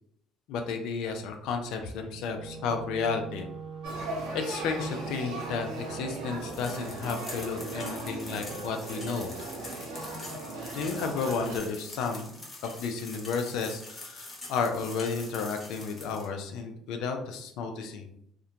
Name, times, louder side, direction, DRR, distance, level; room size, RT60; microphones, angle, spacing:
voice 1, 0.5-3.5 4.3-9.3 10.7-18.1, left 5 dB, 70° left, 5 dB, 0.4 m, -32 dB
Wind instrument woodwind instrument, 2.1-6.6, right 6 dB, 35° right, 0.4 m, -42 dB
Male speech man speaking / Child speech kid speaking / Conversation, 3.8-11.6, right 2 dB, 80° right, 0.7 m, -38 dB
sound 1, 6.5-16.3, left 2 dB, 30° left, 0.8 m, -45 dB
2.4 x 2.1 x 2.8 m, 0.73 s
supercardioid pair, 70°, 0 cm